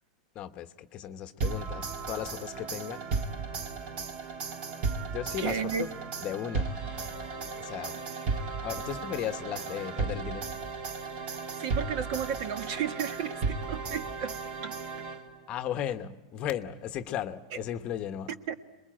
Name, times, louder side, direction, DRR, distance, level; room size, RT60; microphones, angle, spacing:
voice 1, 0.3-3.0 5.1-5.9 6.2-6.8 7.6-8.0 8.6-10.5 15.5-18.3, left 10 dB, 30° left, 9 dB, 1.0 m, -36 dB
sound 1, 1.4-15.5, right 4 dB, 35° right, 1.7 m, -35 dB
voice 2, 5.4-5.9 11.6-14.8 18.5-18.6, right 7 dB, 50° right, 9 dB, 1.4 m, -33 dB
28.0 x 21.5 x 9.0 m, 1.1 s
supercardioid pair, 155°, 4 cm